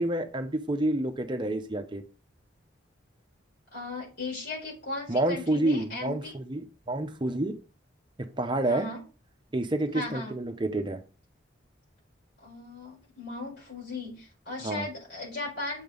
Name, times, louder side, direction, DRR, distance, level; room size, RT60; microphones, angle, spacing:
voice 1, 0.0-2.0 5.1-7.5 8.4-8.9 9.5-11.0 14.6-14.9, right 1 dB, 25° right, 7 dB, 0.7 m, -28 dB
voice 2, 3.7-6.3 8.6-9.0 9.9-10.3 12.4-15.8, left 3 dB, 55° left, -4 dB, 4.7 m, -37 dB
7.7 x 5.3 x 4.0 m, 0.33 s
head